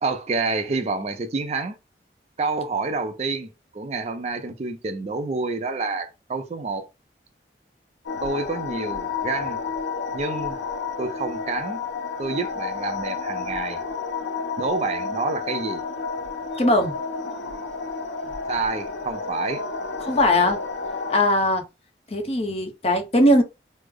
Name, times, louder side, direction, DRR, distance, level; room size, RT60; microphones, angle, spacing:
voice 1, 0.0-1.8 2.4-6.9 8.2-9.6 10.1-10.6 11.0-11.8 12.2-13.8 14.6-15.8 18.5-19.6, right 3 dB, 35° right, 0.4 m, -28 dB
sound 1, 8.1-21.2, left 4 dB, 80° left, 0.5 m, -31 dB
voice 2, 16.6-17.0 20.0-20.6 21.1-21.6 22.1-23.4, left 1 dB, 35° left, 0.7 m, -19 dB
3.2 x 2.0 x 3.5 m
head